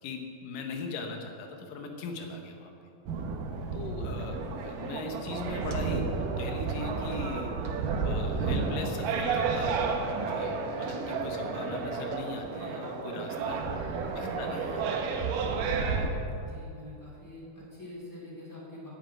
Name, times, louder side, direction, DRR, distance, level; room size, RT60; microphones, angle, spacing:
voice 1, 0.0-2.7 3.7-9.8 10.1-14.9, left 3 dB, 70° left, 3 dB, 2.8 m, -40 dB
sound 1, 3.1-16.1, right 4 dB, 70° right, 2.6 m, -31 dB
voice 2, 16.3-18.9, left 1 dB, 5° left, -6 dB, 2.9 m, -45 dB
10.0 x 8.2 x 9.1 m, 2.5 s
omnidirectional pair, 4.2 m